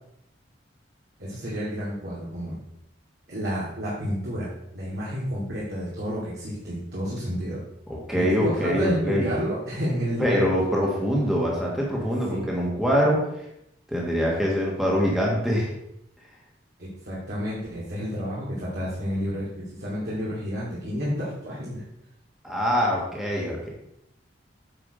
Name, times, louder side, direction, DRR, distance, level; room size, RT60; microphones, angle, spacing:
voice 1, 1.2-2.6 3.3-7.6 8.1-10.5 12.3-12.5 16.8-21.8, equal, 60° right, -8 dB, 2.4 m, -30 dB
voice 2, 7.9-9.3 10.2-13.3 13.9-15.7 22.4-23.7, equal, ahead, -4 dB, 1.6 m, -24 dB
9.0 x 5.0 x 5.0 m, 0.79 s
head